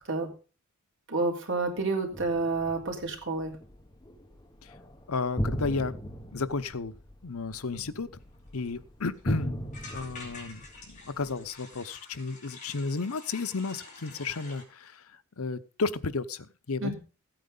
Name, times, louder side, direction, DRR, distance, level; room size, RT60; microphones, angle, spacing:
voice 1, 1.1-3.6 16.8-17.0, right 3 dB, 55° right, 1 dB, 3.8 m, -29 dB
sound 1, 2.1-11.5, equal, 20° left, 1.4 m, -38 dB
voice 2, 5.1-6.0 6.3-6.9 7.2-8.1 8.5-9.6 9.9-10.6 10.9-15.0 15.4-16.9, left 4 dB, 75° left, 14 dB, 0.8 m, -33 dB
sound 2, 8.3-8.4 8.6-8.7 9.0-9.2 9.7-14.6, left 3 dB, 35° left, 4.9 m, -48 dB
16.0 x 9.1 x 3.9 m, 0.34 s
head